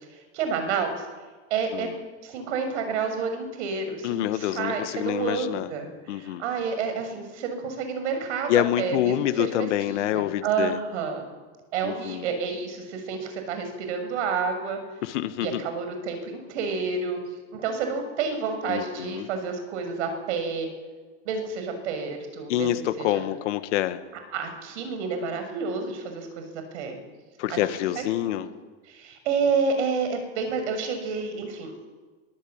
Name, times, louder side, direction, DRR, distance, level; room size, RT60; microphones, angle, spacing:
voice 1, 0.3-1.0 1.5-1.9 2.2-11.2 11.7-14.8 15.4-17.2 17.5-20.7 21.2-22.7 23.0-23.2 24.3-27.0 27.5-27.6 28.0-28.5 28.9-31.7, right 5 dB, 70° right, 7 dB, 6.6 m, -29 dB
voice 2, 4.0-5.7 6.1-6.4 8.5-10.8 11.8-12.2 15.0-15.6 18.7-19.3 22.5-24.0 27.4-28.5, left 13 dB, 75° left, 10 dB, 1.6 m, -26 dB
23.5 x 15.5 x 8.8 m, 1.4 s
supercardioid pair, 130°, 36 cm